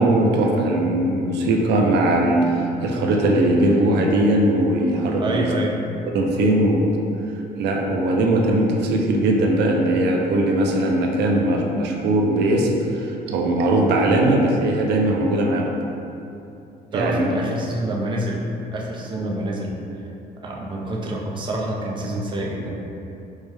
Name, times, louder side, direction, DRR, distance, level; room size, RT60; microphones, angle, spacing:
voice 1, 0.0-5.5 6.1-6.9 7.6-15.7 16.9-17.3, right 1 dB, 80° right, 1 dB, 0.5 m, -20 dB
voice 2, 5.2-5.7 16.9-18.4 18.7-19.7 20.4-22.7, right 1 dB, 30° right, -2 dB, 0.5 m, -27 dB
4.5 x 2.1 x 3.3 m, 2.8 s
cardioid pair, 145°, 17 cm